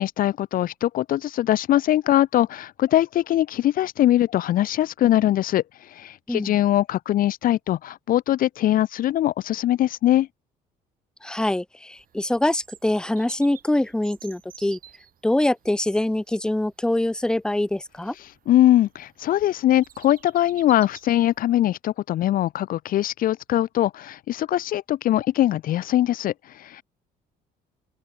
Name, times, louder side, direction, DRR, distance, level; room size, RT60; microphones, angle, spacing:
voice 1, 0.0-10.3 18.5-26.8, left 13 dB, 55° left, 0.6 m, -22 dB
voice 2, 11.2-14.8 15.2-18.1, left 1 dB, 5° left, 0.8 m, -24 dB
Bird vocalization bird call bird song, 11.9-21.6, right 10 dB, 55° right, 6.0 m, -51 dB
open air
cardioid pair, 110°, 17 cm